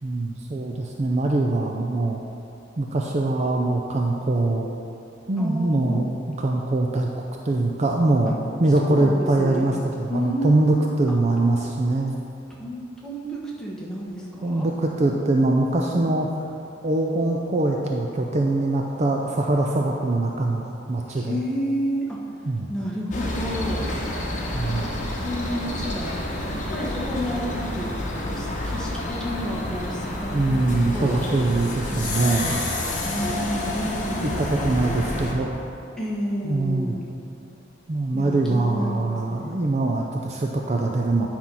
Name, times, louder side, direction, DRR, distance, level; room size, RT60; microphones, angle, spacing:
voice 1, 0.0-2.2 2.8-4.7 5.3-7.1 7.4-12.1 14.4-16.3 16.8-21.4 22.5-22.7 24.5-25.1 30.3-32.6 34.2-35.6 36.4-36.9 37.9-41.3, right 2 dB, 35° right, 0 dB, 0.5 m, -23 dB
voice 2, 5.4-6.0 8.2-8.3 8.8-9.7 10.1-11.2 12.6-12.8 13.0-14.7 21.1-22.2 22.7-23.9 25.2-26.1 26.5-30.6 30.9-31.3 31.9-32.6 33.0-35.0 36.0-37.0 38.1-39.6, equal, 5° left, -5 dB, 1.3 m, -31 dB
sound 1, 23.1-35.3, left 1 dB, 40° left, 1.1 m, -29 dB
9.8 x 4.4 x 5.5 m, 2.7 s
head